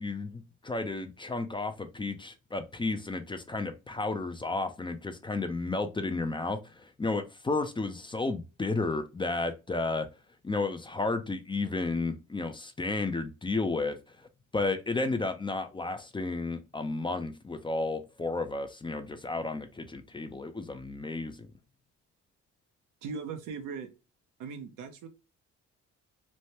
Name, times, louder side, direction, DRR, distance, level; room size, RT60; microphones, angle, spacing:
voice 1, 0.0-10.1 10.4-14.0 14.5-21.5, left 3 dB, 15° left, 0.4 m, -32 dB
voice 2, 23.0-23.9 24.4-25.1, right 5 dB, 85° right, 0.7 m, -39 dB
3.2 x 2.1 x 2.7 m
cardioid pair, 90°, 30 cm